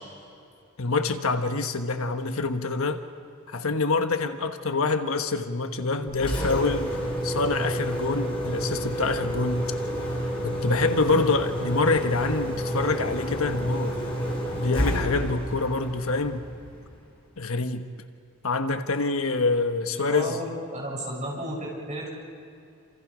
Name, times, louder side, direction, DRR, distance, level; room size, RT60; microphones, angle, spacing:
voice 1, 0.8-3.0 3.5-7.0 7.2-9.7 10.4-14.0 14.6-16.5 17.4-17.8 18.4-20.4, left 3 dB, 75° left, 1.3 m, -26 dB
Engine, 6.1-17.0, equal, 25° left, 5.8 m, -29 dB
voice 2, 19.9-22.1, right 1 dB, 30° right, 7.4 m, -33 dB
28.5 x 27.5 x 5.1 m
head